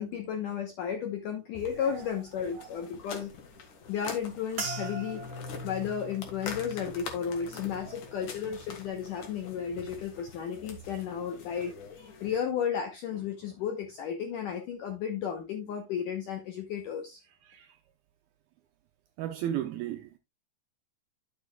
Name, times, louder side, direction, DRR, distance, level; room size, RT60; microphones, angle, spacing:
voice 1, 0.0-3.3 3.9-5.2 5.6-17.2, left 8 dB, 80° left, 1.9 m, -33 dB
sound 1, 1.5-12.4, left 5 dB, 55° left, 2.8 m, -45 dB
voice 2, 2.5-2.9 7.8-8.0 17.4-17.8 19.2-20.2, right 11 dB, 80° right, 2.2 m, -36 dB
sound 2, 4.6-9.1 9.4-10.1 10.7-10.9, right 1 dB, 35° right, 1.7 m, -42 dB
11.5 x 7.2 x 2.3 m
omnidirectional pair, 5.0 m